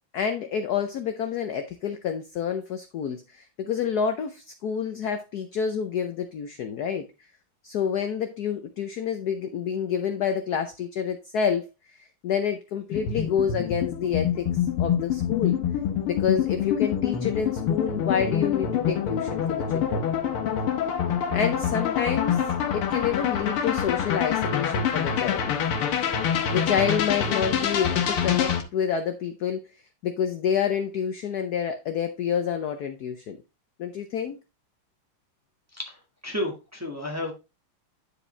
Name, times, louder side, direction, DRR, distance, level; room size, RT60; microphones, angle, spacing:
voice 1, 0.1-7.1 7.6-15.6 16.0-20.1 21.3-22.4 22.7-25.5 26.5-29.6 30.0-33.4 33.8-34.4, left 7 dB, 65° left, 7 dB, 1.0 m, -28 dB
sound 1, 12.9-28.6, left 8 dB, 90° left, 2.0 m, -26 dB
voice 2, 36.2-37.3, left 1 dB, 10° right, 0 dB, 1.4 m, -31 dB
9.9 x 5.0 x 3.2 m, 0.26 s
omnidirectional pair, 2.3 m